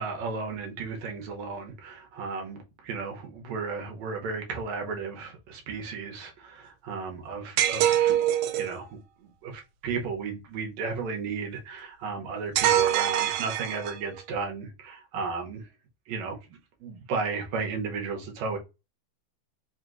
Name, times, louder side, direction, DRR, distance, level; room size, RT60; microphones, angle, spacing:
voice 1, 0.0-8.2 8.5-15.7 16.1-16.4 16.8-18.6, right 4 dB, 70° right, 2.2 m, -34 dB
sound 1, 7.6-8.8 12.6-14.1, right 11 dB, 90° right, 1.4 m, -24 dB
5.3 x 2.9 x 2.5 m
omnidirectional pair, 3.4 m